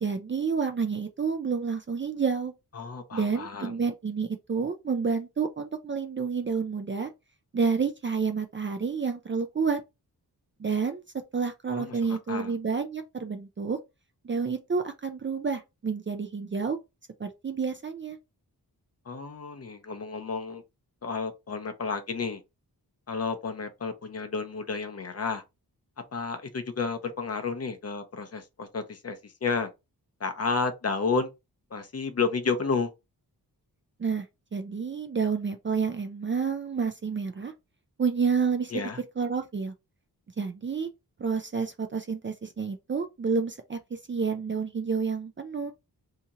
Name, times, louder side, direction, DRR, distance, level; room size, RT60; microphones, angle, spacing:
voice 1, 0.0-2.5 3.1-7.1 7.5-9.8 10.6-11.0 11.3-13.8 14.2-16.8 17.2-18.2 34.0-34.3 34.5-37.5 38.0-38.8 39.2-39.7 40.4-40.9 41.2-45.7, right 5 dB, 30° right, 0.4 m, -29 dB
voice 2, 2.7-3.7 11.7-12.5 19.1-20.6 21.0-22.4 23.1-25.4 26.1-29.7 30.2-31.3 31.7-32.9 38.7-39.0, left 4 dB, 40° left, 0.6 m, -31 dB
2.8 x 2.8 x 3.6 m
wide cardioid pair, 170°, 38 cm